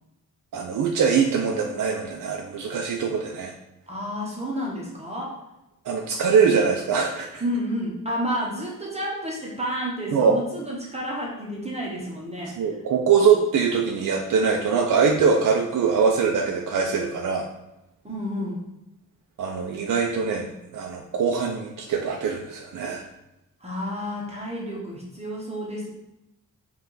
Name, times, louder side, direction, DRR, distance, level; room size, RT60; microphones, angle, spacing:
voice 1, 0.5-3.5 5.8-7.4 10.1-10.4 12.6-17.5 19.4-20.5 20.7-23.1, right 6 dB, 70° right, 1 dB, 0.5 m, -22 dB
voice 2, 3.9-5.3 7.4-12.5 18.0-18.6 23.6-25.9, equal, 20° right, -4 dB, 0.8 m, -30 dB
5.5 x 2.5 x 3.8 m, 0.90 s
wide cardioid pair, 160°, 33 cm